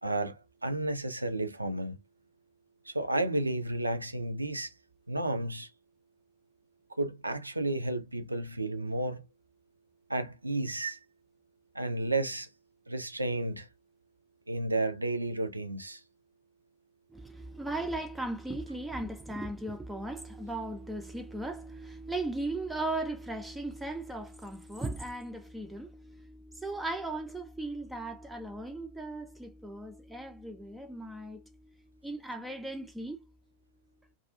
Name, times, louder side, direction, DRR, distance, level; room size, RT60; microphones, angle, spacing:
voice 1, 0.0-2.0 2.9-4.7 5.1-5.7 7.0-9.2 10.1-11.0 11.7-12.5 12.9-13.7 14.5-16.0, right 2 dB, 85° right, 0.4 m, -32 dB
voice 2, 17.1-31.5 32.0-33.2, right 2 dB, 5° right, 0.4 m, -37 dB
2.4 x 2.3 x 2.5 m
figure-of-eight pair, 90°, 0 cm